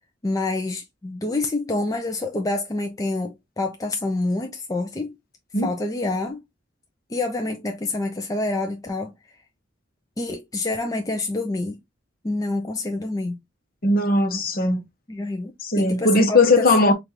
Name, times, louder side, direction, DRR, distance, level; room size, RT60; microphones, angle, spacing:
voice 1, 0.2-5.1 5.6-6.4 7.1-9.1 10.2-11.8 12.2-13.4 15.1-16.9, left 2 dB, 20° left, 0.5 m, -27 dB
voice 2, 13.8-14.8 15.6-16.9, left 2 dB, 50° left, 0.9 m, -18 dB
5.0 x 2.5 x 2.9 m
head